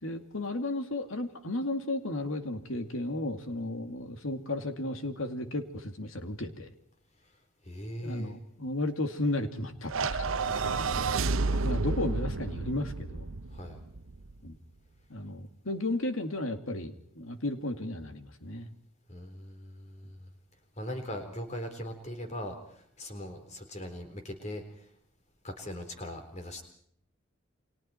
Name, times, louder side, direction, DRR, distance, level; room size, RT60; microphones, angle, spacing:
voice 1, 0.0-6.7 8.0-11.0 11.6-13.3 14.4-14.6 15.1-18.7, left 2 dB, 80° left, 7 dB, 2.4 m, -34 dB
voice 2, 7.6-8.4 11.5-11.9 13.5-13.8 19.1-20.3 20.8-24.9 25.4-26.6, equal, 35° left, 6 dB, 4.1 m, -40 dB
sound 1, 9.9-14.3, right 3 dB, 80° right, 0.8 m, -31 dB
30.0 x 24.5 x 4.5 m, 0.68 s
head